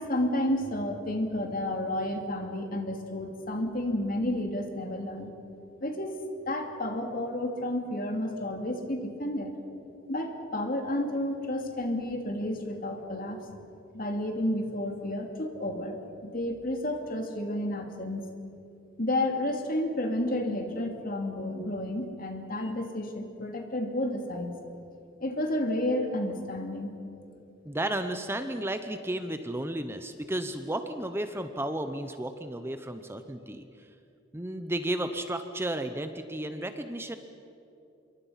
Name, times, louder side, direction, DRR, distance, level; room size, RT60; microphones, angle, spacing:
voice 1, 0.0-5.3 5.8-9.5 10.1-13.4 13.9-18.2 19.0-24.5 25.2-26.9, left 1 dB, 50° left, 4 dB, 2.7 m, -31 dB
voice 2, 27.6-33.7 34.3-37.2, right 1 dB, 15° right, 8 dB, 0.8 m, -33 dB
26.5 x 23.5 x 5.8 m, 2.7 s
head